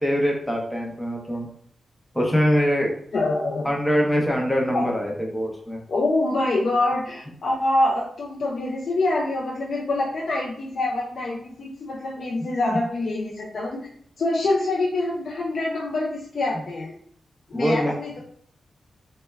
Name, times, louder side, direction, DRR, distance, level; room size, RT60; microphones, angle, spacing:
voice 1, 0.0-1.5 2.1-2.9 3.6-5.8 12.7-12.8 17.5-18.2, equal, 5° left, -1 dB, 0.6 m, -23 dB
voice 2, 3.1-3.7 4.7-4.8 5.9-13.9 14.2-16.9 17.5-18.1, left 2 dB, 60° left, -3 dB, 0.4 m, -25 dB
2.1 x 2.0 x 3.3 m, 0.63 s
wide cardioid pair, 110°, 0 cm